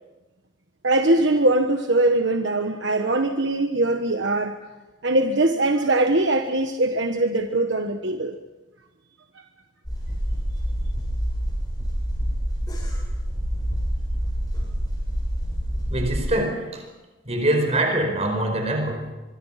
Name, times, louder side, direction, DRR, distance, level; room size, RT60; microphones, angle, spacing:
voice 1, 0.8-4.6 5.0-8.3 9.3-9.4, right 2 dB, 60° right, 1.3 m, -21 dB
sound 1, 9.8-16.2, equal, 20° left, 7.7 m, -27 dB
voice 2, 15.9-16.8 17.2-19.1, right 1 dB, 30° right, 4.9 m, -24 dB
24.5 x 23.5 x 5.9 m
head